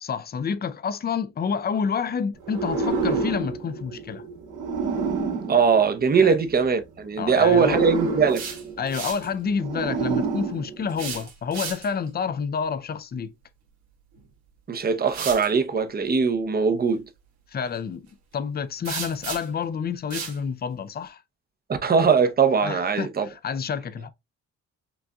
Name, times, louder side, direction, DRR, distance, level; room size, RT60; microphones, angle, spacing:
voice 1, 0.0-4.2 6.2-6.4 7.2-7.8 8.8-13.3 17.5-21.2 22.6-24.1, left 6 dB, 30° left, 0.5 m, -29 dB
sound 1, 2.4-6.6 7.3-11.2, right 4 dB, 85° right, 2.0 m, -29 dB
voice 2, 5.5-8.4 14.7-17.1 21.8-23.3, right 5 dB, 30° right, 0.7 m, -21 dB
sound 2, 8.1-9.3 10.9-12.1 14.1-14.3 15.1-15.5 18.8-19.6 20.1-20.4, right 6 dB, 65° right, 1.6 m, -34 dB
6.0 x 2.5 x 2.2 m
cardioid pair, 90°, 30 cm